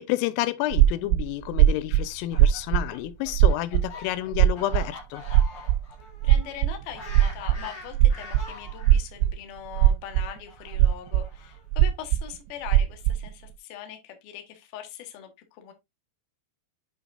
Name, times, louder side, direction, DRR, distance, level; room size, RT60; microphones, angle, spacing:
voice 1, 0.0-5.2, left 15 dB, 90° left, 3.2 m, -30 dB
sound 1, 0.7-2.1 2.3-2.9 3.3-3.9 4.3-4.8 5.3-5.8 6.2-7.6 7.9-9.3 9.7-10.3 10.7-11.3 11.7-12.2 12.7-13.3, right 12 dB, 90° right, 3.1 m, -19 dB
Fowl, 2.0-9.0 9.8-11.8, left 4 dB, 50° left, 3.2 m, -44 dB
voice 2, 6.2-15.7, left 9 dB, 70° left, 2.0 m, -41 dB
8.4 x 5.9 x 2.5 m
omnidirectional pair, 5.7 m